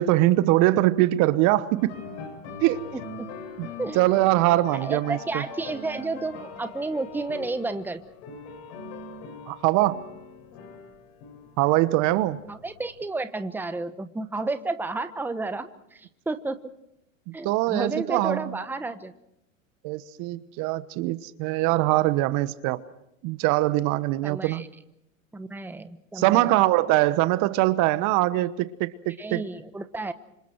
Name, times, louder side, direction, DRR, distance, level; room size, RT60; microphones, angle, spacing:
voice 1, 0.0-2.0 2.6-2.9 3.6-3.7 3.9-5.4 9.5-10.0 11.6-12.4 17.3-18.5 19.8-22.8 23.2-24.6 26.1-29.4, right 17 dB, 45° right, 15 dB, 1.1 m, -22 dB
sound 1, 1.8-13.1, left 4 dB, 60° left, 6.5 m, -42 dB
voice 2, 2.9-3.3 3.8-4.0 4.8-8.0 12.5-16.7 17.3-19.1 24.2-24.7 25.3-26.5 29.2-30.1, right 3 dB, 5° right, 11 dB, 1.1 m, -32 dB
28.5 x 26.5 x 4.6 m, 0.79 s
hypercardioid pair, 100°, 40 cm